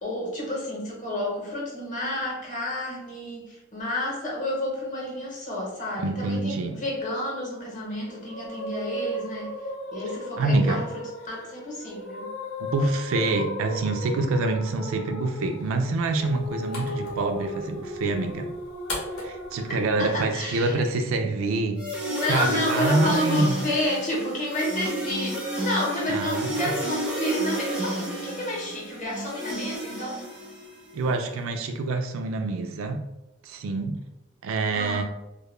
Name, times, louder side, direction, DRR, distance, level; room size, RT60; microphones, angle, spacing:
voice 1, 0.0-9.6 9.9-12.3 20.0-20.8 22.1-30.2 34.7-35.0, left 1 dB, 35° left, -3 dB, 0.8 m, -30 dB
voice 2, 6.0-6.8 10.4-10.9 12.6-18.5 19.2-23.5 26.1-26.5 30.9-33.0 33.4-34.0 34.4-35.0, right 3 dB, 65° right, 5 dB, 0.3 m, -26 dB
sound 1, 8.1-19.8, left 1 dB, 60° left, 0.4 m, -36 dB
sound 2, 16.0-21.1, left 2 dB, 80° left, 0.8 m, -41 dB
sound 3, 21.8-30.9, equal, 5° right, 0.5 m, -31 dB
2.2 x 2.1 x 3.0 m, 0.92 s
head